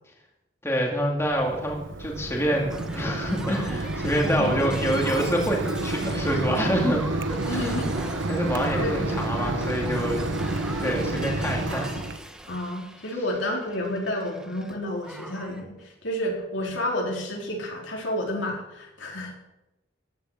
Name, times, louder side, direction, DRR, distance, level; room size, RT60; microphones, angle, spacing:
voice 1, 0.6-7.0 7.5-7.7 8.3-10.3 10.8-12.0, equal, 15° left, 0 dB, 2.2 m, -26 dB
Mechanisms, 1.2-12.2, right 2 dB, 80° right, 1.2 m, -30 dB
Shatter, 2.7-14.7 15.0-15.6 16.7-16.8, right 1 dB, 5° right, 1.2 m, -41 dB
voice 2, 7.5-7.9 8.8-9.0 12.5-15.8 16.0-19.5, left 1 dB, 75° left, -1 dB, 4.3 m, -30 dB
15.0 x 10.5 x 6.6 m, 0.93 s
head